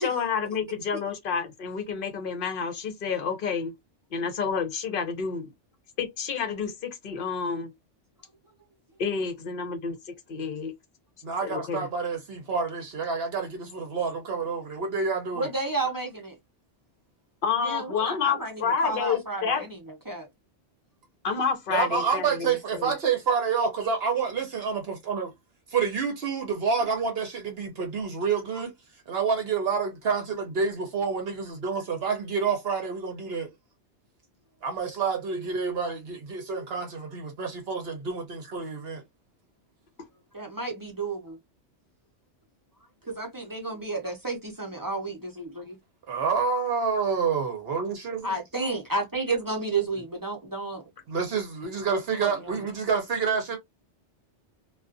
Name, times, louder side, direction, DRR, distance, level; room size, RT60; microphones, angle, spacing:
voice 1, 0.0-3.7 4.1-5.5 6.0-7.7 9.0-10.0 10.3-10.7 11.4-11.9 17.4-19.7 21.2-22.9, left 6 dB, 55° left, 0.8 m, -29 dB
voice 2, 11.2-15.5 21.7-25.3 25.7-28.7 29.1-33.5 34.6-39.0 46.1-48.3 51.1-53.6, right 5 dB, 60° right, 0.9 m, -28 dB
voice 3, 15.3-16.4 17.6-19.8 20.1-20.3 40.3-41.4 43.1-45.8 48.2-50.9 52.2-52.6, right 3 dB, 25° right, 0.6 m, -31 dB
2.4 x 2.3 x 2.4 m
omnidirectional pair, 1.2 m